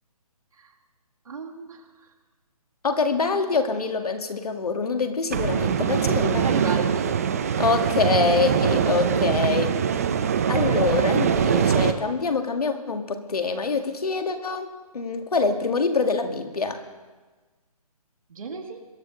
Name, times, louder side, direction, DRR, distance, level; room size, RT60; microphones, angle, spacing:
voice 1, 1.3-1.9 6.4-7.2 18.3-18.9, right 4 dB, 65° right, 2 dB, 2.1 m, -33 dB
voice 2, 2.8-6.8 7.6-9.8 10.5-14.7 14.9-16.8, left 4 dB, 80° left, 5 dB, 2.0 m, -25 dB
sound 1, 5.3-11.9, right 7 dB, 25° right, 0.6 m, -23 dB
22.5 x 11.5 x 3.8 m, 1.3 s
hypercardioid pair, 165°, 19 cm